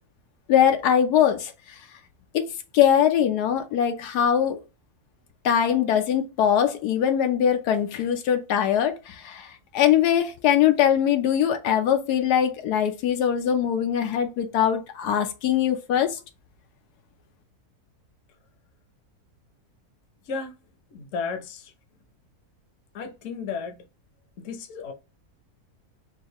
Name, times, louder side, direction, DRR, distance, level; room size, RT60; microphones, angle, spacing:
voice 1, 0.5-1.5 2.3-2.5 2.7-4.6 5.4-16.2, left 9 dB, 90° left, 1.2 m, -22 dB
voice 2, 20.9-21.7 22.9-23.8 24.4-24.9, left 5 dB, 60° left, 1.0 m, -33 dB
4.5 x 2.3 x 2.9 m
omnidirectional pair, 1.6 m